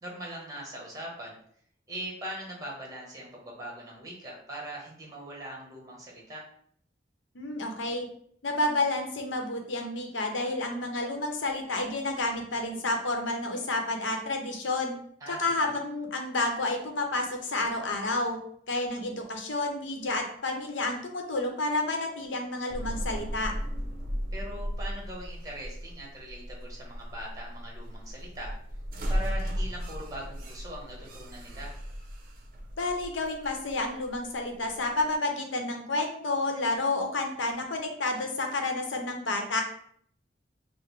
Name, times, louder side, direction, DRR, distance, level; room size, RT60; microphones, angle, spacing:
voice 1, 0.0-1.4 1.9-6.4 15.2-15.8 24.3-28.5 29.1-31.7, right 1 dB, 20° right, -2 dB, 1.1 m, -41 dB
voice 2, 7.3-8.1 8.4-15.0 15.3-18.4 18.7-23.5 32.8-39.6, left 2 dB, 90° left, 3 dB, 0.8 m, -30 dB
sound 1, 22.7-35.1, equal, 50° right, 0.6 m, -36 dB
5.7 x 2.1 x 3.2 m, 0.65 s
head